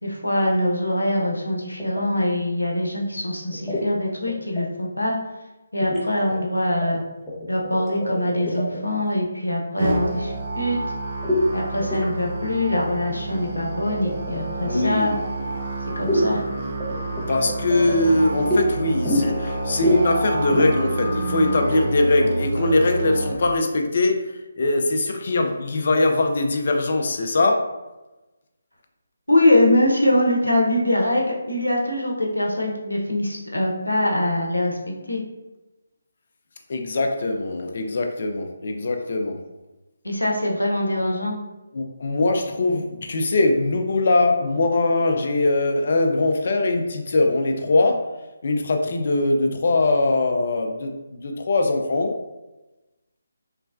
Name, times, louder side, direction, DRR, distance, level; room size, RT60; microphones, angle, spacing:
voice 1, 0.0-5.2 5.7-7.0 7.5-10.8 11.5-15.1 16.0-16.5 29.3-35.2 40.0-41.4, left 1 dB, 90° left, -1 dB, 0.6 m, -23 dB
sound 1, 1.8-2.0 3.5-3.8 4.3-4.6 5.8-6.0 6.3-7.0 7.3-8.9 11.2-11.4 11.8-12.1 12.4-12.5 12.7-14.4 16.0-16.3 16.8-18.6 19.0-19.5 19.8-20.0 20.3-20.7, left 1 dB, 5° left, 0.6 m, -25 dB
Musical instrument, 9.8-23.3, right 2 dB, 45° right, 0.5 m, -29 dB
voice 2, 14.6-15.2 17.3-27.7 36.7-39.4 41.7-48.1 48.4-52.1, left 2 dB, 50° left, 4 dB, 0.4 m, -21 dB
3.1 x 2.1 x 2.3 m, 1.1 s
figure-of-eight pair, 150°, 0 cm